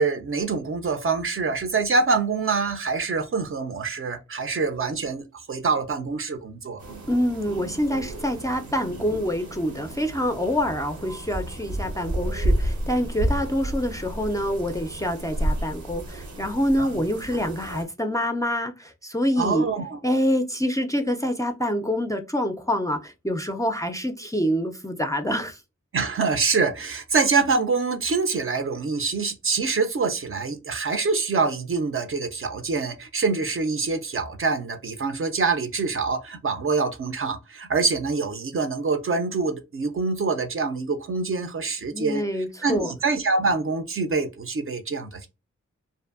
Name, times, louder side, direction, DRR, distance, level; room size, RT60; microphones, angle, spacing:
voice 1, 0.0-6.8 16.8-17.0 19.4-20.0 25.9-42.2 42.6-45.2, right 4 dB, 45° right, 0.4 m, -25 dB
sound 1, 6.8-17.8, right 1 dB, 85° right, 0.7 m, -31 dB
voice 2, 7.1-19.7 20.0-25.6 41.9-42.9, equal, 10° left, 0.4 m, -26 dB
2.5 x 2.5 x 2.4 m
wide cardioid pair, 65°, 29 cm